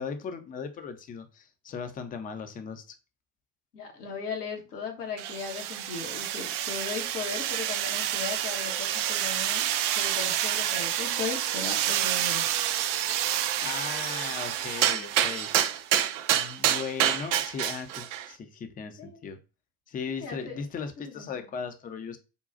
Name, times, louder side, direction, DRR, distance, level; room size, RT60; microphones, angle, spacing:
voice 1, 0.0-3.0 13.6-15.8 16.3-19.4 19.9-22.2, left 6 dB, 20° left, 8 dB, 0.5 m, -37 dB
voice 2, 3.7-9.7 9.9-12.4 19.0-19.2 20.2-20.6 21.0-21.5, left 5 dB, 70° left, 1 dB, 1.1 m, -37 dB
sound 1, 5.2-18.3, right 11 dB, 50° right, 0.5 m, -28 dB
5.2 x 2.2 x 2.4 m, 0.30 s
figure-of-eight pair, 70°, 47 cm